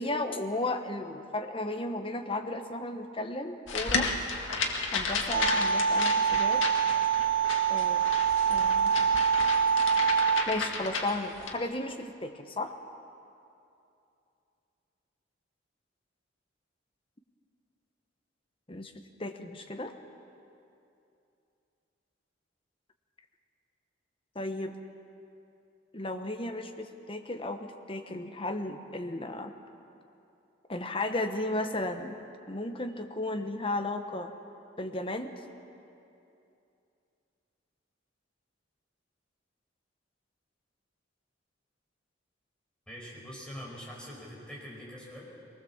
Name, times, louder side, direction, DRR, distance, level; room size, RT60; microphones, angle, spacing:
voice 1, 0.0-4.1 4.9-6.6 7.7-8.0 8.5-8.9 10.5-12.8 18.7-18.9 19.2-19.9 24.3-24.7 25.9-29.5 30.7-32.2 32.5-34.3 34.8-35.3, left 2 dB, 30° left, 6 dB, 1.2 m, -34 dB
sound 1, 3.7-11.6, left 4 dB, 85° left, 1.9 m, -33 dB
sound 2, 5.3-10.4, right 6 dB, 65° right, 0.7 m, -25 dB
voice 2, 42.9-45.3, equal, 5° left, -5 dB, 5.3 m, -44 dB
22.5 x 19.5 x 7.3 m, 2.7 s
head